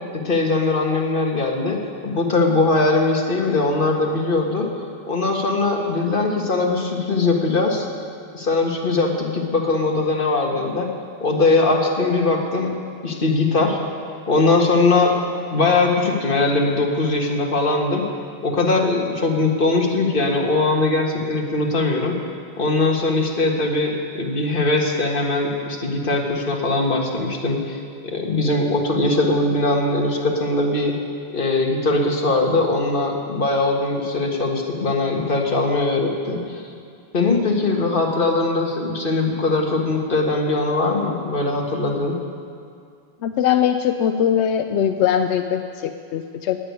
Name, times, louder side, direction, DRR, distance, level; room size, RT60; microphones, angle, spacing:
voice 1, 0.1-1.8 2.0-4.7 5.1-7.9 8.3-10.9 11.2-12.7 13.0-13.8 14.3-15.1 15.5-18.0 18.4-22.2 22.6-31.0 31.3-36.6 37.1-42.2, left 3 dB, 55° left, 0 dB, 1.9 m, -20 dB
voice 2, 43.2-46.6, left 9 dB, 90° left, 7 dB, 0.9 m, -21 dB
17.5 x 6.6 x 9.6 m, 2.3 s
omnidirectional pair, 1.1 m